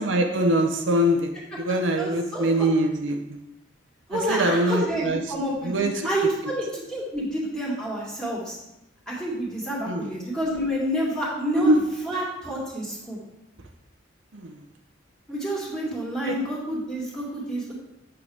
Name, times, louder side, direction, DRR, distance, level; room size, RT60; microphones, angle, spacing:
voice 1, 0.0-1.3 1.6-3.2 4.1-5.2 5.6-6.1 9.8-10.1 11.5-11.8 14.3-14.5 16.2-16.4, right 1 dB, 70° right, 4 dB, 0.7 m, -23 dB
voice 2, 2.0-2.7 4.1-8.6 9.1-13.2 15.3-17.8, equal, 5° left, -6 dB, 2.1 m, -29 dB
8.6 x 6.6 x 3.5 m, 0.88 s
head